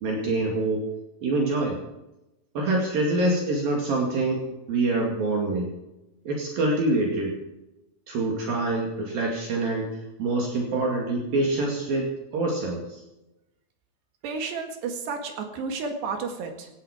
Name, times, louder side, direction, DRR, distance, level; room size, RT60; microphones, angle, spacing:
voice 1, 0.0-0.9 1.2-1.8 2.6-5.7 6.3-7.4 8.1-9.9 10.2-13.0, right 2 dB, 60° right, -1 dB, 3.9 m, -25 dB
voice 2, 14.2-16.7, right 4 dB, 85° right, 5 dB, 4.0 m, -32 dB
17.5 x 13.5 x 5.0 m, 0.95 s
omnidirectional pair, 4.7 m